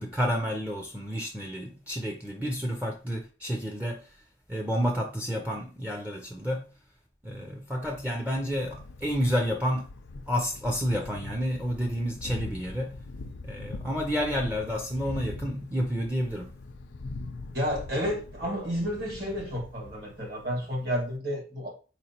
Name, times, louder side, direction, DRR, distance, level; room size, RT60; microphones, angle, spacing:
voice 1, 0.0-4.2 4.5-6.7 7.2-9.9 10.3-13.0 13.4-16.5, equal, 10° right, 0.5 m, -30 dB
Thunder, 7.8-21.2, left 3 dB, 85° left, 0.5 m, -42 dB
voice 2, 17.5-21.7, equal, 60° right, 1.7 m, -31 dB
4.3 x 3.0 x 2.8 m
head